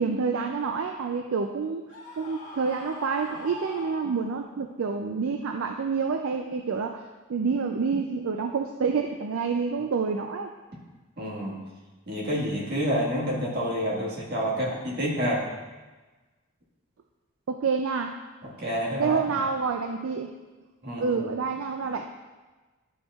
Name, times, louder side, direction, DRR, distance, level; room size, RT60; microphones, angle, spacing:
voice 1, 0.0-1.9 2.2-7.0 7.3-10.5 17.5-18.2 19.0-20.3 21.0-22.0, right 5 dB, 60° right, 4 dB, 0.4 m, -28 dB
Screaming, 1.9-4.6, left 2 dB, 50° left, 2.2 m, -42 dB
voice 2, 11.2-11.6 12.1-15.4 18.6-19.2 20.8-21.1, equal, 45° right, -5 dB, 1.7 m, -28 dB
11.5 x 5.0 x 2.4 m, 1.2 s
head